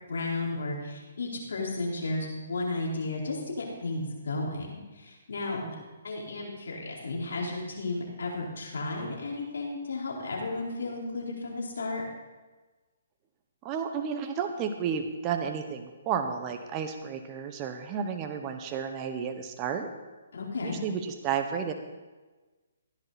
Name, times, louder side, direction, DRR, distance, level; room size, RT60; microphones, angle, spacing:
voice 1, 0.1-5.6 6.0-12.0 20.3-20.8, left 2 dB, 75° left, -2 dB, 4.1 m, -33 dB
voice 2, 13.6-19.9 20.6-21.7, right 7 dB, 25° right, 6 dB, 0.9 m, -32 dB
15.5 x 10.5 x 4.1 m, 1.2 s
hypercardioid pair, 150°, 0 cm